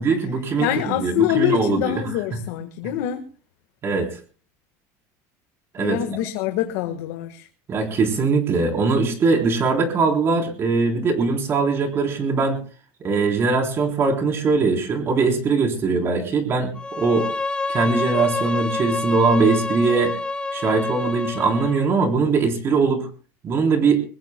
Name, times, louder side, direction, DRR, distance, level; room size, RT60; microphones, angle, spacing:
voice 1, 0.0-1.8 3.8-4.1 5.7-6.2 7.7-12.6 13.0-16.7 17.0-17.3 17.7-20.1 20.5-23.1 23.4-24.0, right 4 dB, 30° right, 3 dB, 3.8 m, -21 dB
voice 2, 0.6-3.2 5.8-7.5, left 12 dB, 75° left, 7 dB, 1.5 m, -24 dB
Bowed string instrument, 16.8-21.9, left 3 dB, 10° left, 0.7 m, -28 dB
23.0 x 20.5 x 2.2 m, 0.38 s
cardioid pair, 160°, 9 cm